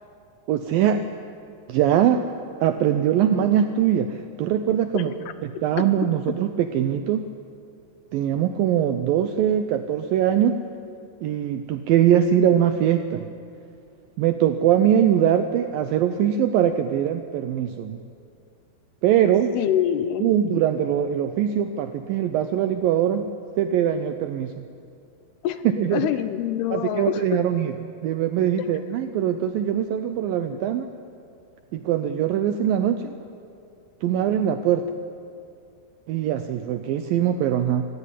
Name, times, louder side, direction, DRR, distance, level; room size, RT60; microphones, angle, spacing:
voice 1, 0.5-1.0 1.7-2.3 2.6-5.1 5.4-7.3 8.1-10.6 11.2-13.3 14.2-18.0 19.0-19.5 20.2-23.3 23.6-24.5 25.8-26.1 26.7-27.7 28.0-30.9 31.7-33.1 34.0-34.8 36.1-37.9, right 10 dB, 80° right, 8 dB, 2.1 m, -22 dB
voice 2, 4.9-5.6 19.5-20.3 25.4-25.6 25.9-27.4 30.5-30.6, left 10 dB, 75° left, 12 dB, 2.7 m, -26 dB
26.0 x 15.5 x 10.0 m, 2.5 s
omnidirectional pair, 4.9 m